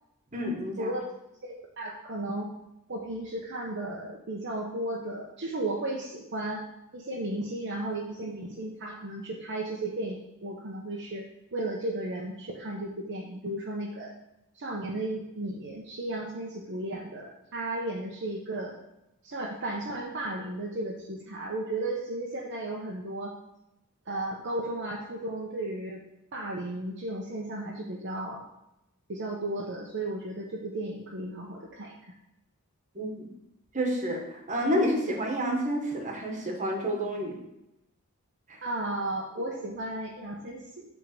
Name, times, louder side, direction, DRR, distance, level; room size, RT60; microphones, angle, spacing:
voice 1, 0.3-0.9 32.9-33.3 33.7-37.3 38.5-38.6, equal, 35° right, 0 dB, 1.6 m, -29 dB
voice 2, 1.4-2.5 2.9-6.6 6.9-14.1 14.5-18.8 19.2-23.3 24.1-26.0 26.3-28.4 29.1-32.0 38.6-40.9, right 1 dB, 55° right, -2 dB, 1.0 m, -34 dB
8.1 x 3.8 x 6.7 m, 0.88 s
head